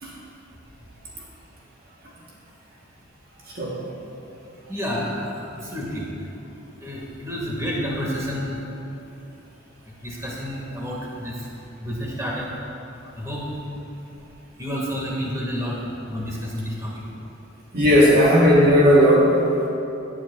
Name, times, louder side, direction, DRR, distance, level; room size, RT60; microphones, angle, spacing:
voice 1, 4.7-5.5 5.7-6.0 6.8-8.5 10.0-11.4 11.8-12.5 13.2-13.5 14.6-15.8 16.1-16.9, equal, 15° right, -5 dB, 2.0 m, -29 dB
voice 2, 17.7-19.7, equal, 50° right, -5 dB, 1.4 m, -16 dB
17.5 x 9.2 x 2.5 m, 2.9 s
head